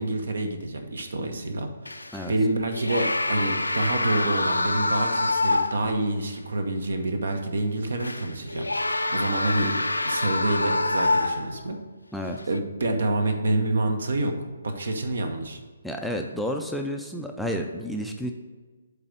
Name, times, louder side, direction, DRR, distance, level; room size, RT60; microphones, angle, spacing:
voice 1, 0.0-8.7 9.1-11.8 12.5-15.6, right 2 dB, 65° right, 6 dB, 1.0 m, -27 dB
sound 1, 1.9-2.3 2.7-6.0 6.4-6.5 8.0-11.7 12.4-12.6, left 2 dB, 80° left, 0.5 m, -26 dB
voice 2, 15.8-18.3, equal, ahead, 1 dB, 0.4 m, -30 dB
7.9 x 3.5 x 6.5 m, 1.3 s
figure-of-eight pair, 135°, 0 cm